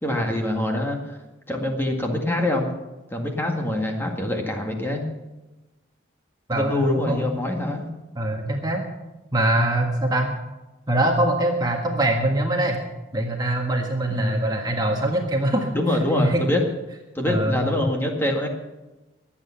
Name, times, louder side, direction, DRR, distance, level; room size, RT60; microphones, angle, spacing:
voice 1, 0.0-1.2 1.5-2.7 3.1-5.0 6.5-7.9 14.1-14.4 15.7-16.6 17.1-18.5, left 1 dB, 10° left, 1 dB, 1.9 m, -24 dB
voice 2, 6.5-7.3 8.1-8.8 9.3-10.3 10.9-12.8 13.1-15.7 16.2-16.4 17.2-17.6, right 1 dB, 20° right, 1 dB, 1.5 m, -23 dB
22.5 x 8.8 x 5.8 m, 1.1 s
head